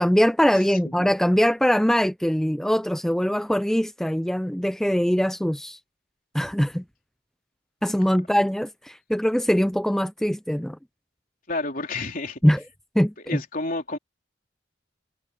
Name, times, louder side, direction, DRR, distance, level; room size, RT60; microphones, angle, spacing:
voice 1, 0.0-5.8 6.3-6.8 7.8-10.8 12.4-12.6 13.0-13.1, equal, ahead, 0.4 m, -22 dB
voice 2, 11.5-12.4 13.3-14.0, left 2 dB, 50° left, 3.6 m, -30 dB
head